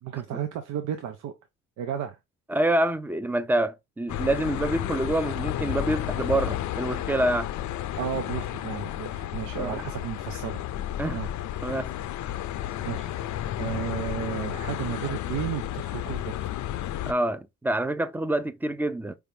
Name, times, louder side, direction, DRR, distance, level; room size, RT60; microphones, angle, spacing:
voice 1, 0.0-1.3 1.8-2.2 8.0-10.6 11.1-11.3 12.8-13.1 13.6-16.5, right 9 dB, 85° right, 0.7 m, -33 dB
voice 2, 2.5-7.5 9.6-9.8 11.0-11.2 11.6-11.9 17.1-19.2, right 1 dB, 5° right, 0.4 m, -26 dB
sound 1, 4.1-17.1, left 12 dB, 70° left, 0.5 m, -32 dB
4.8 x 3.4 x 2.7 m
cardioid pair, 90°, 30 cm